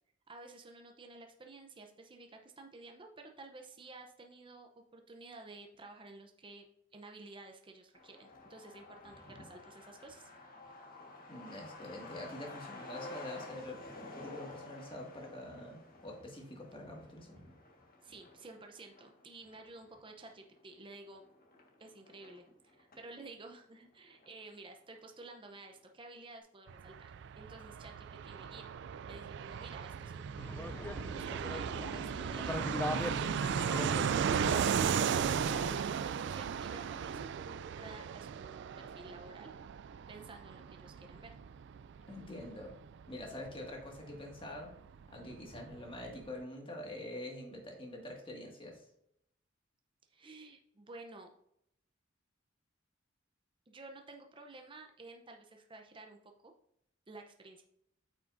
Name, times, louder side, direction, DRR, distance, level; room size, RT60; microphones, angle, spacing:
voice 1, 0.3-6.6 6.9-10.3 18.0-21.2 21.8-27.1 27.4-30.7 31.3-39.5 40.1-41.3 50.1-51.3 53.7-56.2 56.4-56.5 57.1-57.6, right 3 dB, 25° right, 3 dB, 0.6 m, -52 dB
Truck, 7.9-23.1 23.4-23.5 23.8-24.7 25.0-25.1 25.4-25.8, left 2 dB, 50° left, 1.5 m, -52 dB
voice 2, 11.3-17.4 42.1-42.8 43.1-44.7 45.1-48.9, left 1 dB, 25° left, 0 dB, 1.9 m, -45 dB
Fixed-wing aircraft airplane, 26.7-45.1 45.3-45.4 45.6-46.3, right 7 dB, 65° right, 0.3 m, -36 dB
sound 1, 30.4-35.8, left 1 dB, 10° left, 0.3 m, -41 dB
8.9 x 6.0 x 2.6 m, 0.76 s
head